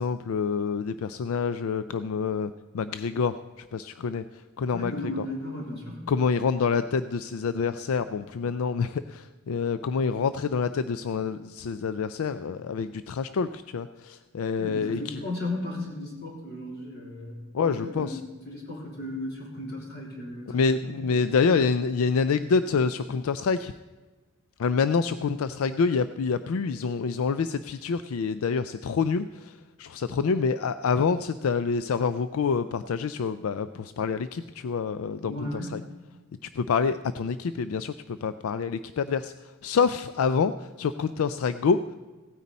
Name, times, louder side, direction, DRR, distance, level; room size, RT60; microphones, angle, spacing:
voice 1, 0.0-2.5 2.7-3.3 3.7-4.2 4.6-5.2 6.1-13.9 14.3-15.2 17.5-18.2 20.5-23.7 24.6-29.3 29.8-35.8 36.6-37.9 38.2-39.3 39.6-40.5 40.8-41.8, left 5 dB, 80° left, 12 dB, 0.4 m, -27 dB
voice 2, 4.7-6.0 14.5-21.1 35.2-35.8, left 1 dB, 50° left, -4 dB, 3.7 m, -36 dB
16.5 x 9.4 x 4.1 m, 1.3 s
head